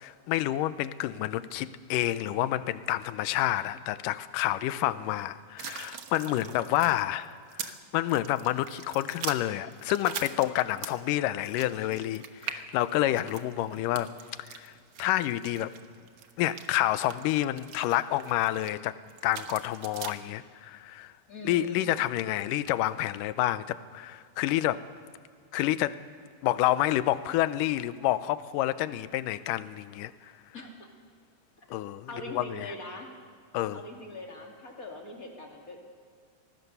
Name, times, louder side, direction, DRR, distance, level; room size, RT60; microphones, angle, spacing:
voice 1, 0.0-14.1 14.4-14.7 15.0-15.7 16.4-19.0 19.2-21.1 21.4-24.9 25.5-26.0 26.4-30.1 31.7-32.7 33.5-33.8, left 14 dB, 80° left, 2.2 m, -29 dB
sound 1, 5.6-7.8 8.1-11.1 11.4-18.7 19.1-20.1, right 8 dB, 85° right, 1.1 m, -42 dB
voice 2, 21.3-21.8 30.5-30.9 31.7-31.8 32.1-33.1 33.7-35.8, left 1 dB, 25° left, 2.7 m, -42 dB
24.5 x 19.0 x 6.8 m
omnidirectional pair, 4.1 m